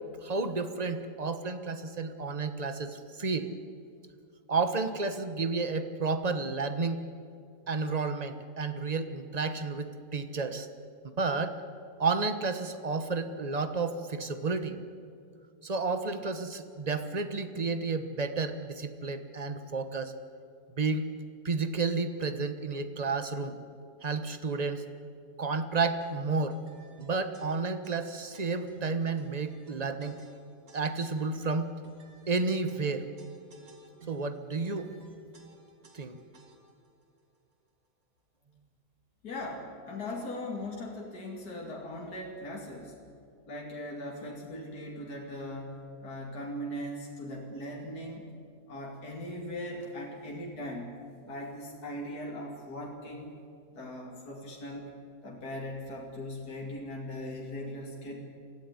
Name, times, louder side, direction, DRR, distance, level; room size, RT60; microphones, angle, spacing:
voice 1, 0.2-3.5 4.5-7.0 7.7-10.7 11.2-11.6 12.0-14.8 15.6-20.1 20.8-21.1 21.4-23.6 24.0-24.8 25.4-26.6 27.0-30.1 30.7-31.7 32.3-33.1 34.1-34.9 35.9-36.2, right 4 dB, 25° right, 9 dB, 1.1 m, -31 dB
sound 1, 26.0-36.9, right 4 dB, 55° right, 2.5 m, -52 dB
voice 2, 39.2-42.9 43.5-48.3 48.7-51.0 51.2-53.3 53.7-54.9 55.2-58.2, left 1 dB, 65° left, -1 dB, 3.1 m, -39 dB
23.5 x 15.0 x 9.7 m, 2.4 s
omnidirectional pair, 1.8 m